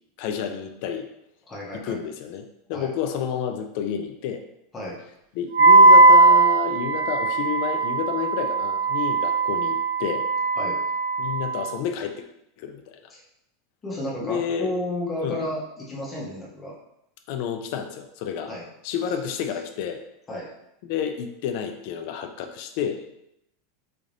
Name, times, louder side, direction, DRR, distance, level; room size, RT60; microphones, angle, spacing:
voice 1, 0.2-1.1 1.7-4.4 5.4-10.3 11.2-12.2 12.6-13.0 14.2-14.7 15.2-15.4 17.3-18.5 18.8-20.0 20.8-23.0, left 8 dB, 45° left, 6 dB, 0.3 m, -30 dB
voice 2, 1.5-2.0 2.7-2.9 4.7-5.0 10.6-10.8 13.1-13.2 13.8-16.8 18.5-18.7 20.3-20.5, left 1 dB, 15° left, -4 dB, 0.7 m, -32 dB
Wind instrument woodwind instrument, 5.5-11.7, right 3 dB, 45° right, 0.3 m, -18 dB
3.8 x 3.2 x 2.5 m, 0.81 s
supercardioid pair, 175°, 0 cm